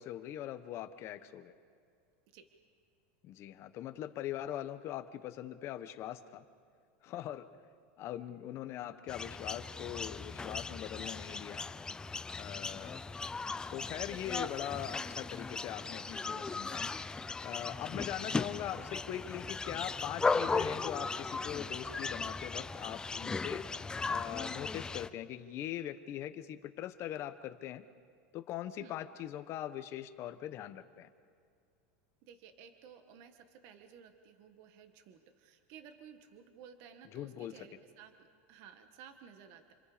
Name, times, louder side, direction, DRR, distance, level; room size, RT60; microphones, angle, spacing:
voice 1, 0.0-1.5 3.2-6.4 7.0-7.5 8.0-11.6 12.4-13.0 13.7-16.9 17.4-23.6 24.1-27.8 28.3-31.1 37.1-37.7, left 12 dB, 40° left, 10 dB, 1.2 m, -41 dB
sound 1, 9.1-25.1, left 4 dB, 10° left, 0.6 m, -37 dB
voice 2, 32.2-38.1 38.5-39.7, right 7 dB, 55° right, 7 dB, 1.8 m, -55 dB
28.0 x 26.5 x 5.2 m, 2.3 s
supercardioid pair, 140°, 7 cm